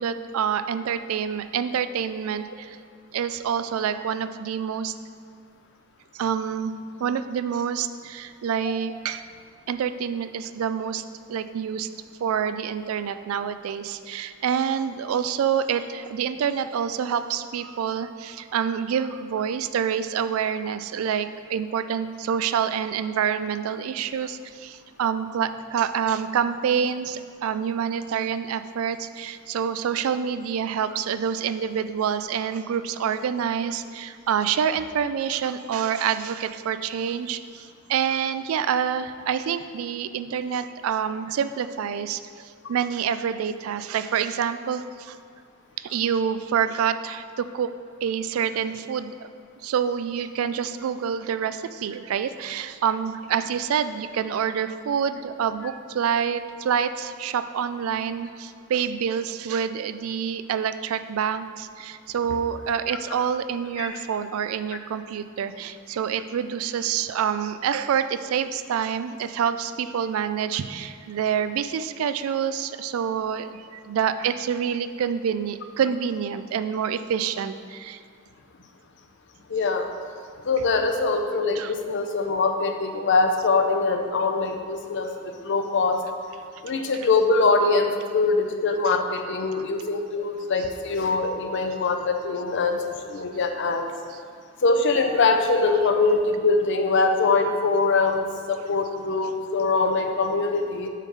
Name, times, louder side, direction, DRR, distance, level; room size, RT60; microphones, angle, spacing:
voice 1, 0.0-2.8 3.1-5.0 6.1-6.7 7.0-9.3 9.7-11.0 11.3-11.9 12.2-45.2 45.8-47.7 48.0-49.3 49.6-78.0 81.6-81.7 86.8-86.9 88.8-89.0 89.6-89.7, right 7 dB, 90° right, 12 dB, 0.3 m, -27 dB
voice 2, 79.5-79.9 80.4-86.0 86.6-93.9 94.6-100.9, left 3 dB, 60° left, 5 dB, 0.6 m, -23 dB
7.3 x 3.6 x 5.5 m, 2.2 s
head